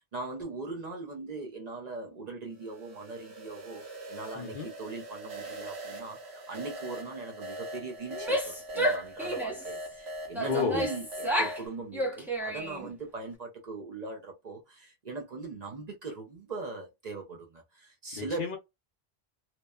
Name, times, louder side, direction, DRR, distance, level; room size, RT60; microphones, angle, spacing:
voice 1, 0.0-3.8 4.1-18.5, right 3 dB, 50° right, 0.6 m, -40 dB
sound 1, 2.6-11.7, equal, 85° right, 1.1 m, -42 dB
voice 2, 4.4-4.7 10.5-10.8 18.1-18.6, left 7 dB, 55° left, 0.7 m, -31 dB
Female speech woman speaking / Yell, 8.1-9.7 10.3-11.6 11.9-12.9, equal, 5° right, 0.5 m, -31 dB
2.9 x 2.1 x 2.2 m
omnidirectional pair, 1.1 m